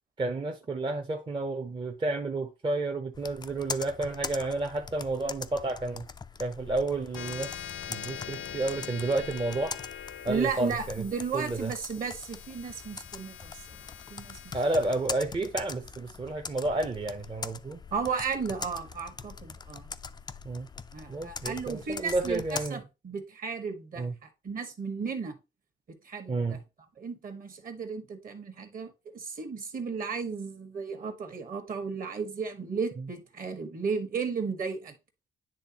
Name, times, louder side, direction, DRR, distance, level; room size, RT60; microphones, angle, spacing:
voice 1, 0.2-6.1 6.4-7.6 7.9-9.7 10.2-11.0 11.3-11.7 14.5-17.8 20.4-20.7 21.1-22.8 24.0-24.1 26.3-26.6, right 2 dB, 25° right, 0.7 m, -31 dB
Computer keyboard, 3.1-22.7, left 5 dB, 20° left, 0.4 m, -42 dB
sound 1, 7.1-18.0, left 9 dB, 70° left, 0.7 m, -44 dB
voice 2, 10.3-13.8 14.1-14.6 17.9-19.9 20.9-25.3 25.9-26.6 27.0-34.9, right 5 dB, 45° right, 1.3 m, -34 dB
10.0 x 3.3 x 2.9 m
cardioid pair, 90°, 20 cm